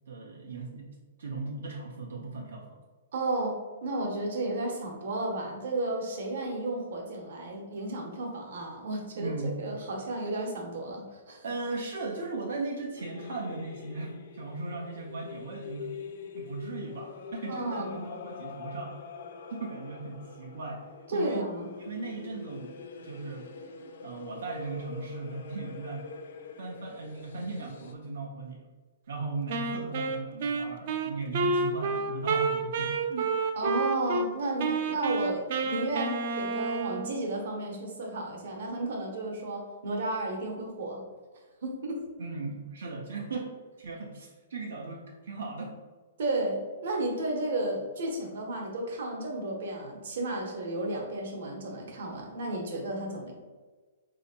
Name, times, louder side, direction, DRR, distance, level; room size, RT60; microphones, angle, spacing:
voice 1, 0.1-2.8 9.1-9.8 11.4-15.9 16.3-19.0 19.5-20.9 21.1-21.5 21.8-23.5 24.0-26.1 26.6-28.7 29.1-33.3 42.2-45.7, right 3 dB, 80° right, -1 dB, 0.6 m, -37 dB
voice 2, 3.1-11.4 17.5-18.0 21.1-21.7 33.6-41.0 41.6-42.0 46.2-53.3, right 2 dB, 55° right, 1 dB, 0.9 m, -33 dB
sound 1, 13.0-27.9, left 5 dB, 50° left, 0.3 m, -44 dB
Wind instrument woodwind instrument, 29.5-34.3 34.6-37.2, right 3 dB, 40° right, 0.3 m, -30 dB
4.3 x 2.8 x 2.7 m, 1.3 s
hypercardioid pair, 175°, 0 cm